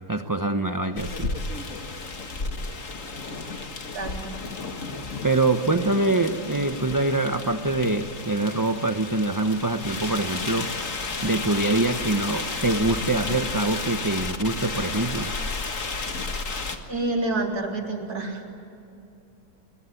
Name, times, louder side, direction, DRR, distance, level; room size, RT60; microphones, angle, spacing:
voice 1, 0.1-1.3 5.2-10.7 11.2-15.3, right 2 dB, 20° right, 7 dB, 0.6 m, -24 dB
sound 1, 1.0-16.8, left 3 dB, 50° left, 2.1 m, -32 dB
voice 2, 3.9-4.4 16.9-18.4, right 2 dB, 65° right, 1 dB, 4.0 m, -28 dB
25.5 x 21.5 x 9.8 m, 2.7 s
omnidirectional pair, 1.8 m